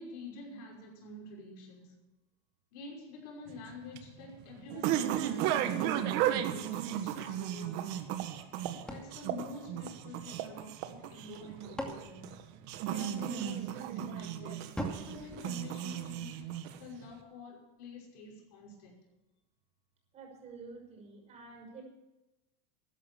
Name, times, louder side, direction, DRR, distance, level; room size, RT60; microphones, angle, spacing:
voice 1, 0.0-1.9 2.7-8.3 8.9-12.4 12.9-19.0, left 3 dB, 65° left, 0 dB, 5.8 m, -48 dB
sound 1, 3.5-17.0, right 11 dB, 55° right, 1.5 m, -35 dB
sound 2, 8.9-10.4 11.3-13.2 14.7-16.4, right 1 dB, 5° left, 2.4 m, -44 dB
voice 2, 20.1-21.8, right 4 dB, 30° right, 1 dB, 5.9 m, -49 dB
13.5 x 11.0 x 7.2 m, 1.0 s
supercardioid pair, 145°, 21 cm